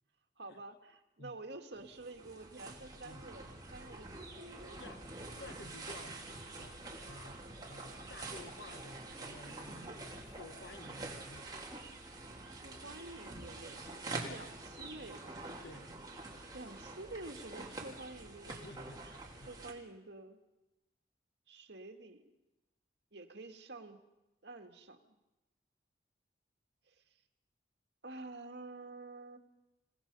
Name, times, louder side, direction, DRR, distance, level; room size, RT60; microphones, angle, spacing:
voice 1, 0.4-4.8 12.5-15.3 16.5-18.7 19.4-20.4 21.5-22.2 23.1-24.0 24.4-25.2 26.9-27.0 28.0-29.4, right 2 dB, 75° right, 4 dB, 2.0 m, -49 dB
sound 1, 1.7-19.7, right 2 dB, 20° right, 3.0 m, -47 dB
voice 2, 4.7-5.0 5.3-6.2 6.6-11.8 15.6-16.0 18.5-19.5, left 2 dB, 65° left, 9 dB, 1.3 m, -53 dB
28.5 x 18.0 x 5.5 m, 1.0 s
head